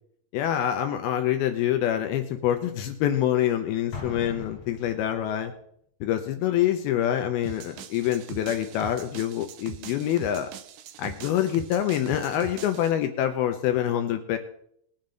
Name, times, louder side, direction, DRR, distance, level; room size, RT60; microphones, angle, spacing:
voice 1, 0.3-5.5 6.0-10.5 11.0-14.4, left 11 dB, 80° left, 7 dB, 2.5 m, -26 dB
Explosion, 3.9-5.5, left 4 dB, 50° left, 2.1 m, -40 dB
sound 1, 7.4-12.9, right 9 dB, 80° right, 1.9 m, -42 dB
20.5 x 7.3 x 3.9 m, 0.70 s
omnidirectional pair, 4.5 m